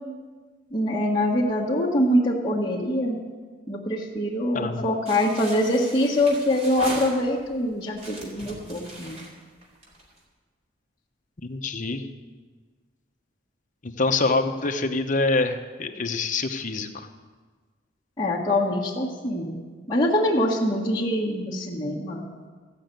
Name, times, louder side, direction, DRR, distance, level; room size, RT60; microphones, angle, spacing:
voice 1, 0.7-3.2 3.7-9.2 18.2-19.6 19.9-22.2, left 1 dB, 20° left, -10 dB, 1.6 m, -24 dB
voice 2, 4.5-4.9 11.4-12.1 13.8-17.1, left 3 dB, 45° left, 7 dB, 0.8 m, -26 dB
sound 1, 5.1-7.5 7.9-10.2, right 1 dB, 35° right, 3.2 m, -39 dB
14.5 x 6.6 x 9.1 m, 1.4 s
head